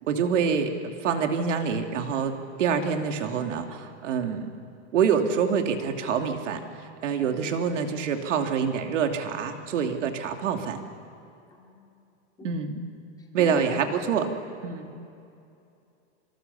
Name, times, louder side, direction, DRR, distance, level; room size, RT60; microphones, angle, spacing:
voice 1, 0.0-4.5 4.9-10.8 12.4-12.8 13.3-14.3 14.6-14.9, right 6 dB, 85° right, 5 dB, 2.9 m, -26 dB
voice 2, 7.2-7.5 11.5-11.9 12.4-12.7 13.4-14.0, left 4 dB, 10° left, -1 dB, 3.2 m, -41 dB
27.0 x 25.5 x 7.1 m, 2.6 s
supercardioid pair, 170°, 36 cm